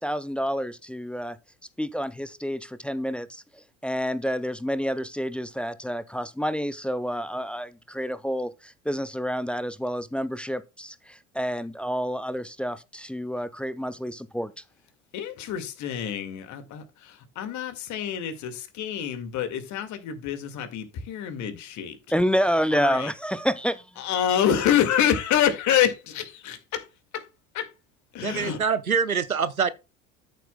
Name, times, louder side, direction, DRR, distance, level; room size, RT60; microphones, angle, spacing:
voice 1, 0.0-1.4 1.8-3.4 3.8-14.5 22.1-23.8, equal, 5° left, 0.3 m, -28 dB
voice 2, 15.1-22.0 22.7-23.1 24.0-26.8 27.1-27.2 27.5-27.7 28.1-28.6, left 10 dB, 45° left, 2.0 m, -27 dB
voice 3, 28.2-29.7, right 6 dB, 90° right, 0.7 m, -25 dB
13.5 x 7.6 x 2.2 m
figure-of-eight pair, 70°, 41 cm